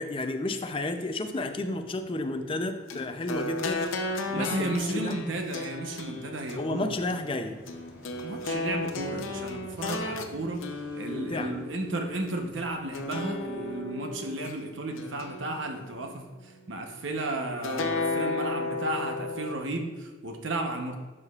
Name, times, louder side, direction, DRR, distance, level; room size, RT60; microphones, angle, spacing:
voice 1, 0.0-3.9 4.3-5.2 6.6-7.6 11.1-11.6, left 2 dB, 25° left, 7 dB, 0.4 m, -32 dB
sound 1, 0.6-13.8, right 1 dB, 10° right, 1.9 m, -55 dB
sound 2, 2.9-12.3 12.9-14.5 15.0-16.1 17.6-19.6, left 2 dB, 85° left, 0.6 m, -34 dB
voice 2, 4.3-6.9 8.2-10.6 10.9-21.0, right 2 dB, 75° right, 4 dB, 0.9 m, -33 dB
11.0 x 4.9 x 2.4 m, 1.2 s
head